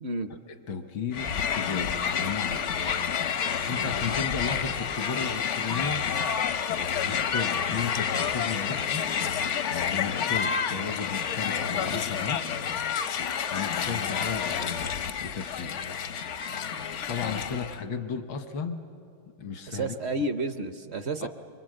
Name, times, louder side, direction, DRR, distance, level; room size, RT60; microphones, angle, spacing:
voice 1, 0.5-2.7 3.7-6.0 7.1-9.1 9.9-12.7 13.5-14.9 15.2-15.8 17.1-18.9 19.4-20.0 21.2-21.3, left 6 dB, 85° left, 7 dB, 2.0 m, -34 dB
Crowd, 1.1-17.8, left 7 dB, 60° left, 0.7 m, -29 dB
voice 2, 19.7-21.3, right 2 dB, 55° right, 9 dB, 0.7 m, -31 dB
25.5 x 24.5 x 7.8 m, 2.5 s
omnidirectional pair, 2.1 m